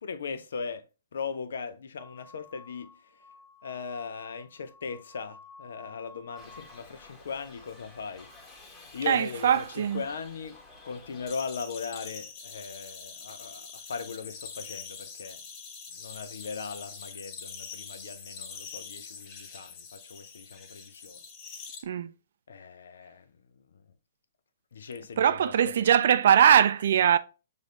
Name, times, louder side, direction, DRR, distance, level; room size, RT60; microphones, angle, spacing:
voice 1, 0.0-0.8 1.1-3.2 3.6-10.6 10.8-15.4 15.9-21.2 22.5-23.3 23.5-23.8 24.7-25.7, left 5 dB, 65° left, 0.5 m, -39 dB
sound 1, 2.0-6.8, left 4 dB, 20° right, 0.9 m, -52 dB
Shout / Livestock farm animals working animals, 6.3-11.3, left 3 dB, 15° left, 1.4 m, -52 dB
voice 2, 9.1-10.0 21.8-22.1 25.2-27.2, right 9 dB, 60° right, 0.4 m, -21 dB
sound 2, 11.3-21.8, left 6 dB, 35° left, 1.0 m, -44 dB
6.4 x 2.5 x 3.1 m
figure-of-eight pair, 125°, 0 cm